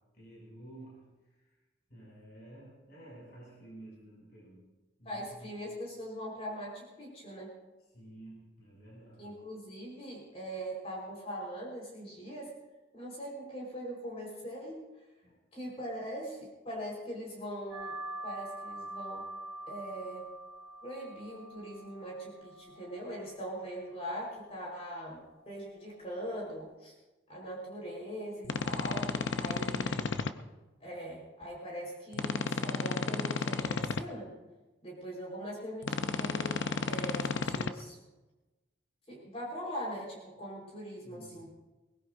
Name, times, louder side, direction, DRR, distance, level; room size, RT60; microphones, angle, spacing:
voice 1, 0.0-1.6 1.9-4.7 5.0-5.5 7.9-9.4 15.2-15.4 29.4-30.1 41.0-41.8, right 1 dB, 55° left, -5 dB, 6.6 m, -52 dB
voice 2, 5.0-7.5 9.2-12.5 12.9-14.8 15.5-18.0 18.2-19.3 19.7-20.3 20.8-26.9 27.3-30.0 30.8-34.3 34.8-38.0 39.1-41.5, equal, 35° left, -3 dB, 4.5 m, -41 dB
sound 1, 17.7-26.8, right 1 dB, 50° right, 3.1 m, -46 dB
sound 2, 28.4-30.3 32.1-34.0 35.8-37.7, left 4 dB, 80° left, 0.7 m, -33 dB
22.5 x 19.5 x 2.7 m, 1.1 s
head